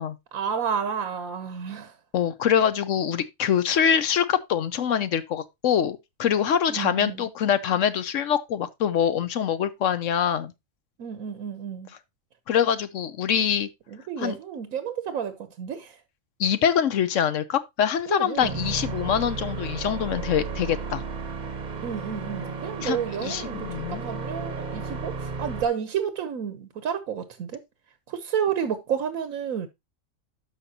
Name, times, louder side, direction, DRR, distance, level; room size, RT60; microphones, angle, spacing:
voice 1, 0.3-2.0 6.7-7.2 11.0-11.9 13.9-16.0 18.1-18.6 21.8-27.6 28.1-29.7, right 8 dB, 90° right, 1.3 m, -31 dB
voice 2, 2.1-10.5 12.5-13.7 14.2-14.4 16.4-21.0 22.8-24.0, left 8 dB, 70° left, 1.1 m, -24 dB
sound 1, 18.4-25.7, right 4 dB, 40° right, 0.8 m, -34 dB
12.5 x 5.3 x 2.8 m
omnidirectional pair, 1.4 m